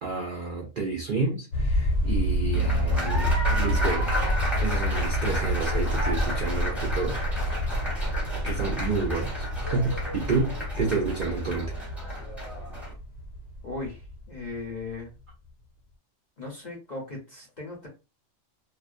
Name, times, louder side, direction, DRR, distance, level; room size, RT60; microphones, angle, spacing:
voice 1, 0.0-4.2 4.6-7.2 8.4-11.7, right 4 dB, 65° right, 0.5 m, -30 dB
sound 1, 1.5-14.8, equal, 70° left, 1.0 m, -28 dB
Applause, 2.5-12.9, equal, ahead, 0.7 m, -34 dB
voice 2, 13.6-15.2 16.4-17.9, left 3 dB, 45° left, 0.6 m, -38 dB
2.4 x 2.2 x 2.4 m
omnidirectional pair, 1.4 m